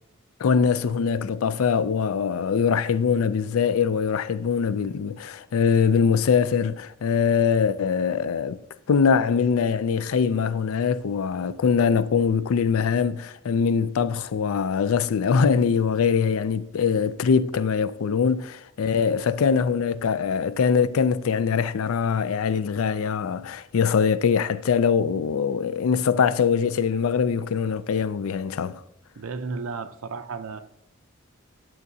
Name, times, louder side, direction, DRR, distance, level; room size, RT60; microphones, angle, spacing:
voice 1, 0.4-8.6 8.9-28.8, left 6 dB, 80° left, 0.4 m, -23 dB
voice 2, 29.2-30.6, right 4 dB, 80° right, 0.6 m, -33 dB
11.0 x 7.6 x 2.7 m
head